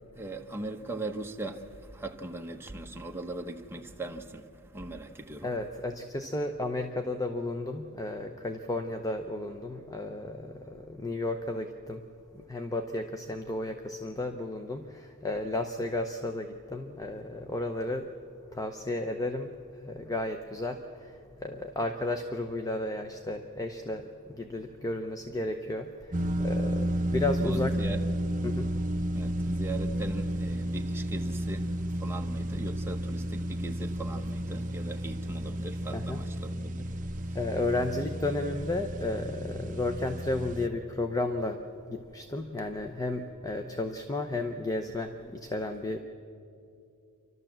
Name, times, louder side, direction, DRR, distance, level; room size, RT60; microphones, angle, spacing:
voice 1, 0.1-5.5 27.4-28.0 29.1-37.0 37.2-37.4, right 2 dB, 10° right, 1.0 m, -40 dB
voice 2, 5.4-12.0 12.3-18.1 18.5-27.9 28.4-28.7 35.9-36.2 37.3-41.6 41.9-46.0, left 2 dB, 15° left, 0.7 m, -33 dB
sound 1, 26.1-40.7, right 1 dB, 35° right, 0.9 m, -32 dB
28.5 x 12.5 x 7.4 m
head